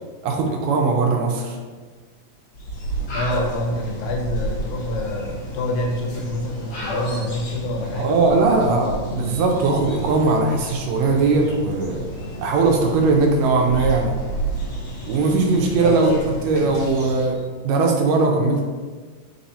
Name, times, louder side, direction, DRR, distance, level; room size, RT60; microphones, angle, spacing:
voice 1, 0.2-1.6 8.0-12.0 12.4-14.1 15.1-17.4 17.6-18.6, right 3 dB, 80° right, 1 dB, 1.7 m, -19 dB
sound 1, 2.5-17.4, right 1 dB, 50° left, 2.2 m, -31 dB
voice 2, 3.1-9.4 15.8-16.2, left 1 dB, 80° left, 1 dB, 2.1 m, -27 dB
4.7 x 2.7 x 4.1 m, 1.4 s
omnidirectional pair, 3.4 m